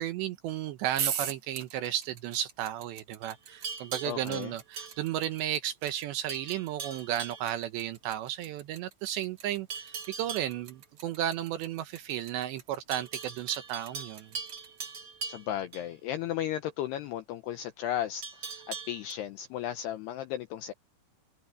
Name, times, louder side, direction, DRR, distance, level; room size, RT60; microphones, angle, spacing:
voice 1, 0.0-14.3, right 12 dB, 75° right, 2.8 m, -34 dB
sound 1, 0.9-15.0, right 8 dB, 55° right, 2.0 m, -40 dB
Livestock farm animals working animals, 3.2-5.5 5.8-6.0 6.3-7.5 9.7-10.6 12.9-15.9 18.2-19.1, right 5 dB, 30° right, 3.5 m, -41 dB
voice 2, 4.0-4.5 15.3-20.7, left 11 dB, 90° left, 2.4 m, -35 dB
omnidirectional pair, 5.8 m